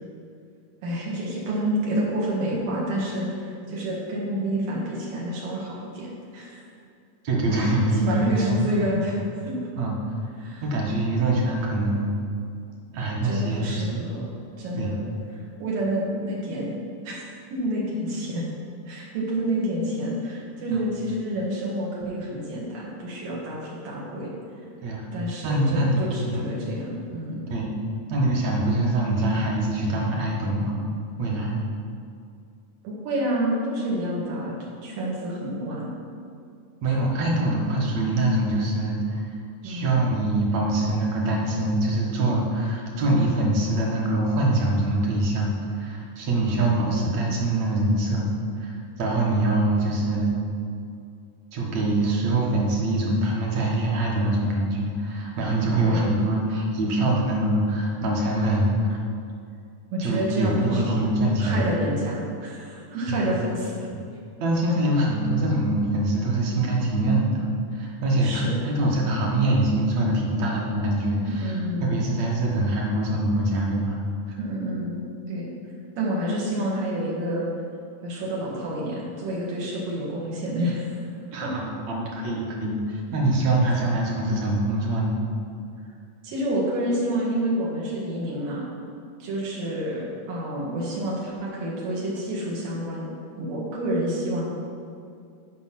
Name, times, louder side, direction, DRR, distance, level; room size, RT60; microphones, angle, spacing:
voice 1, 0.8-6.7 7.6-7.7 8.0-9.6 10.4-10.6 13.2-15.1 15.3-16.8 17.0-17.2 17.5-18.5 18.9-24.3 25.1-27.5 32.8-34.6 34.8-35.9 39.6-40.0 43.1-43.4 46.7-47.2 55.8-56.1 59.9-61.1 61.4-63.9 68.2-68.5 71.3-72.0 74.4-75.0 75.3-75.5 76.0-77.5 78.0-81.0 81.4-81.5 83.7-83.8 86.2-88.6 89.2-93.1 93.4-94.5, right 1 dB, 85° right, -5 dB, 3.4 m, -28 dB
voice 2, 7.2-8.9 9.8-9.9 10.6-12.1 12.9-14.0 14.8-14.9 20.7-20.8 24.8-25.1 25.4-26.5 27.5-27.7 28.1-30.8 31.2-31.6 36.8-39.3 39.6-48.3 48.6-50.3 51.5-59.0 60.0-61.7 63.1-63.2 63.9-64.0 64.4-67.5 67.7-71.5 71.8-74.0 74.3-74.4 81.3-85.2, right 1 dB, 60° right, -2 dB, 2.5 m, -24 dB
10.0 x 5.2 x 5.9 m, 2.4 s
omnidirectional pair, 3.7 m